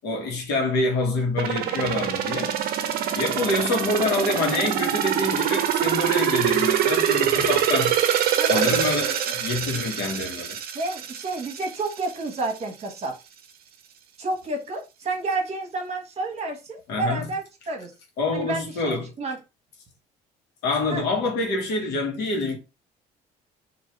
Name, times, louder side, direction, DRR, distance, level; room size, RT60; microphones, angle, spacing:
voice 1, 0.0-2.6 3.1-7.9 8.5-10.6 16.9-17.2 18.2-19.1 20.6-22.6, left 2 dB, 85° left, 1.2 m, -26 dB
sound 1, 1.4-12.1 12.5-12.6, right 9 dB, 65° right, 0.6 m, -24 dB
voice 2, 10.7-13.2 14.2-17.9 18.3-19.4 20.9-21.0, right 3 dB, 40° right, 1.2 m, -30 dB
3.0 x 2.6 x 3.2 m
cardioid pair, 110°, 17 cm